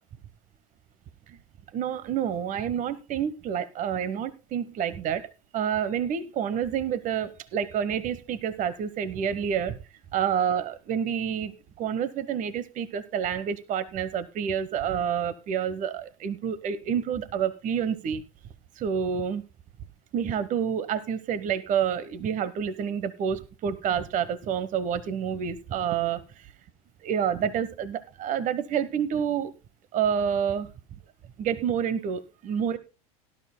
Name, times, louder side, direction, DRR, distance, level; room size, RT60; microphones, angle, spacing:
voice 1, 1.7-9.8 10.1-18.2 18.8-19.4 20.1-26.5 27.0-29.5 29.9-30.7 31.4-32.8, right 8 dB, 40° right, 14 dB, 1.1 m, -28 dB
18.5 x 12.0 x 2.2 m, 0.29 s
hypercardioid pair, 90°, 19 cm